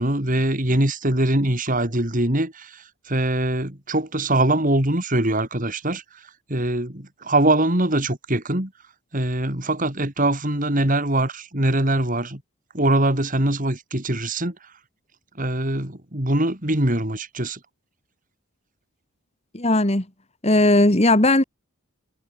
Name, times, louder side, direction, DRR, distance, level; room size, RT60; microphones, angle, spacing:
voice 1, 0.0-6.0 6.5-8.7 9.1-12.4 12.7-14.5 15.4-17.6, right 1 dB, 35° right, 3.4 m, -22 dB
voice 2, 19.5-20.0 20.4-21.4, left 1 dB, 30° left, 1.8 m, -17 dB
head